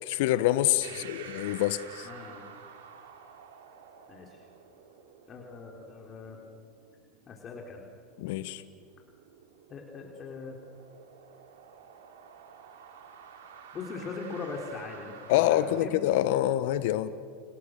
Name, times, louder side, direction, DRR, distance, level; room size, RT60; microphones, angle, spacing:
voice 1, 0.0-2.1 8.2-8.6 15.3-17.1, left 13 dB, 65° left, 14 dB, 1.3 m, -26 dB
sound 1, 0.8-15.8, right 7 dB, 75° right, 3.7 m, -51 dB
voice 2, 2.0-2.5 4.1-4.4 5.3-6.4 7.3-7.8 9.7-10.6 13.7-16.0, left 4 dB, 35° left, 1 dB, 4.3 m, -41 dB
30.0 x 29.0 x 6.8 m, 2.3 s
hypercardioid pair, 90°, 0 cm